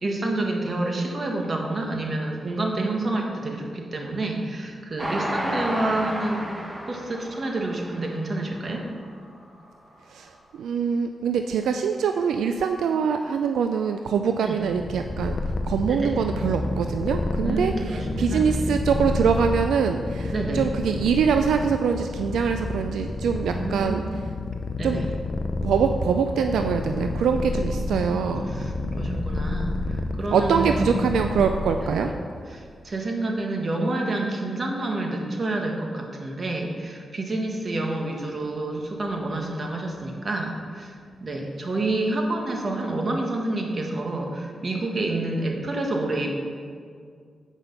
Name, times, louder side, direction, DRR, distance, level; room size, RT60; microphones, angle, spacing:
voice 1, 0.0-6.5 6.8-8.9 14.4-14.6 15.8-16.2 17.4-18.4 20.3-20.7 23.5-24.2 24.8-25.1 27.7-31.2 31.9-32.1 32.5-40.9 41.2-46.3, right 2 dB, 45° right, 1 dB, 1.5 m, -28 dB
Train, 5.0-8.4 8.9-9.0 9.3-9.4, right 1 dB, 20° right, 1.5 m, -31 dB
voice 2, 10.1-15.4 15.7-24.0 24.8-25.0 25.6-28.5 30.3-32.1, right 6 dB, 90° right, 6 dB, 0.3 m, -24 dB
Purr, 14.6-32.3, left 2 dB, 50° left, 0.6 m, -29 dB
8.0 x 5.9 x 5.5 m, 2.1 s
cardioid pair, 60°, 0 cm